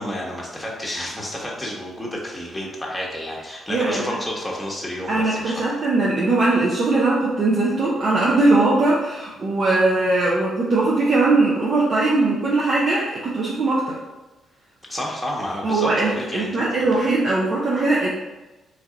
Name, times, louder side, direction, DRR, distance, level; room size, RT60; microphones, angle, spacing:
voice 1, 0.0-5.6 14.9-16.9, left 1 dB, 5° left, -3 dB, 1.1 m, -30 dB
voice 2, 3.7-4.0 5.1-14.0 15.6-18.1, right 2 dB, 50° right, -5 dB, 0.7 m, -20 dB
3.3 x 2.6 x 3.8 m, 1.1 s
supercardioid pair, 70°, 0 cm